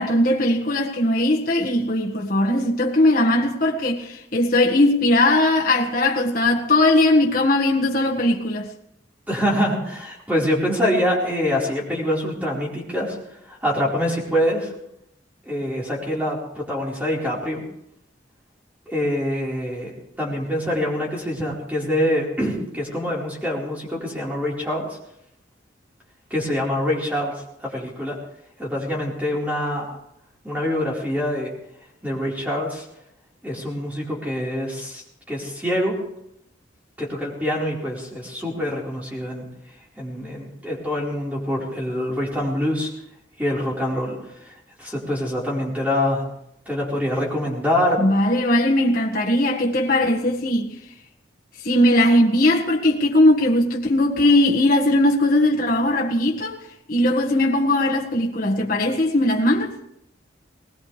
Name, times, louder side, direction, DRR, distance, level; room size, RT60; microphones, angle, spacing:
voice 1, 0.0-8.7 48.0-50.7 51.6-56.6 56.9-59.7, left 1 dB, 45° left, 1.7 m, -19 dB
voice 2, 9.3-13.2 13.5-14.7 15.5-17.6 18.9-19.9 20.2-25.0 26.3-28.2 28.6-30.0 30.4-31.5 32.0-32.8 33.4-36.0 37.0-39.5 40.0-42.9 43.4-44.2 44.4-46.2 46.7-48.0, equal, 10° right, 4.5 m, -25 dB
21.0 x 20.0 x 3.4 m
head